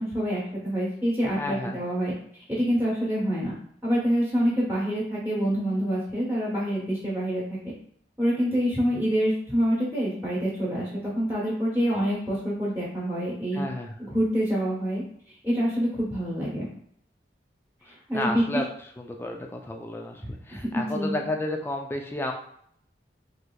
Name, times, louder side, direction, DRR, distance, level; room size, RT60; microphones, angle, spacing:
voice 1, 0.0-2.1 2.5-3.5 3.8-7.7 8.2-13.7 14.0-15.0 15.4-16.7 18.1-18.4 20.2-21.2, equal, 10° right, -7 dB, 1.0 m, -26 dB
voice 2, 1.4-1.8 13.5-13.9 17.9-18.6 19.0-22.3, left 1 dB, 15° left, 2 dB, 0.3 m, -32 dB
3.2 x 2.8 x 2.2 m, 0.67 s
head